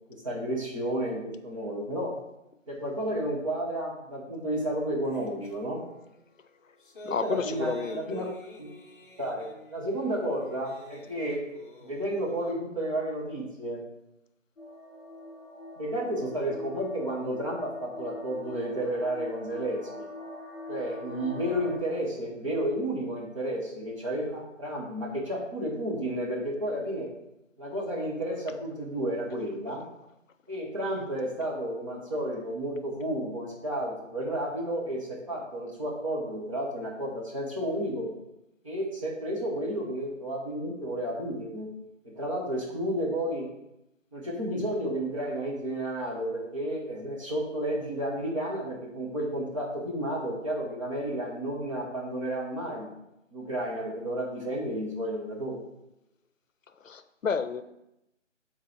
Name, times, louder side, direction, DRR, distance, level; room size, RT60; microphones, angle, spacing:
voice 1, 0.2-2.1 2.7-5.8 7.1-8.2 8.6-8.7 9.2-11.4 11.8-13.8 15.8-20.1 20.7-27.1 27.6-29.8 30.5-38.1 38.6-41.7 42.0-43.5 44.1-52.9 53.3-55.6, right 1 dB, 25° right, -4 dB, 1.1 m, -32 dB
sound 1, 5.1-5.6 6.6-12.5, equal, 40° left, 0.8 m, -47 dB
voice 2, 7.0-8.3 56.8-57.6, left 6 dB, 80° left, 11 dB, 0.6 m, -31 dB
sound 2, 14.6-21.8, left 1 dB, 15° left, 1.4 m, -43 dB
6.9 x 4.0 x 4.5 m, 0.87 s
figure-of-eight pair, 160°, 38 cm